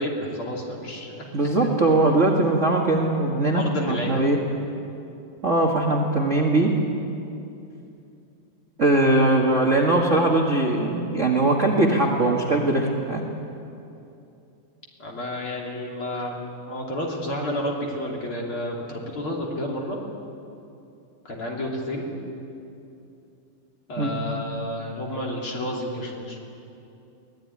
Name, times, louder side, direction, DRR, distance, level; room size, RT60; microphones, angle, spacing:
voice 1, 0.0-1.3 1.6-1.7 3.5-4.2 15.0-16.4 16.7-20.0 21.3-22.1 23.9-26.4, left 1 dB, 35° left, -1 dB, 3.6 m, -30 dB
voice 2, 1.3-4.4 5.4-6.7 8.8-13.3 24.0-24.1, right 2 dB, 40° right, 0 dB, 1.1 m, -21 dB
23.5 x 18.5 x 9.8 m, 2.7 s
omnidirectional pair, 4.2 m